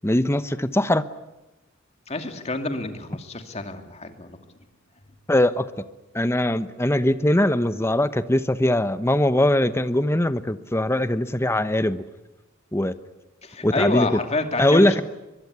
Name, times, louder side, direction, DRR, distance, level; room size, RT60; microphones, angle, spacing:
voice 1, 0.0-1.0 5.3-5.7 6.1-12.0 12.7-12.9 13.6-14.1 14.6-15.0, left 1 dB, 15° left, 12 dB, 1.0 m, -21 dB
voice 2, 2.1-4.4 13.4-15.0, left 2 dB, 30° left, 6 dB, 2.6 m, -28 dB
23.0 x 23.0 x 9.6 m, 1.0 s
head